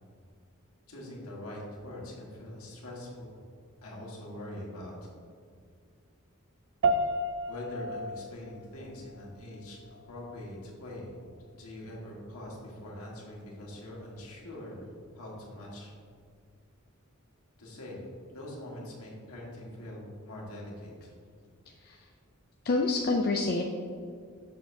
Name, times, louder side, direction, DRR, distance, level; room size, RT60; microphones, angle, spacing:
voice 1, 0.9-3.4 3.8-5.1 7.5-11.2 11.5-14.9 15.1-15.9 17.6-21.1, left 1 dB, 80° left, -4 dB, 1.6 m, -43 dB
sound 1, 6.8-16.4, right 1 dB, 55° right, 0.4 m, -36 dB
voice 2, 22.6-23.6, left 3 dB, 45° left, 1 dB, 0.4 m, -27 dB
6.5 x 6.5 x 2.7 m, 2.2 s
head